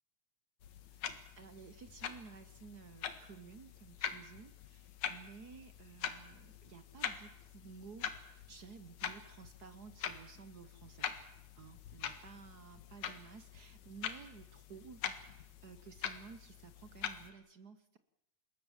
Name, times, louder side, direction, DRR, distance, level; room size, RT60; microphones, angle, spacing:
sound 1, 0.6-17.3, left 8 dB, 75° left, 2.9 m, -44 dB
voice 1, 0.9-11.1 11.5-18.0, right 5 dB, 75° right, 11 dB, 0.9 m, -54 dB
26.5 x 20.5 x 7.3 m, 0.87 s
omnidirectional pair, 3.4 m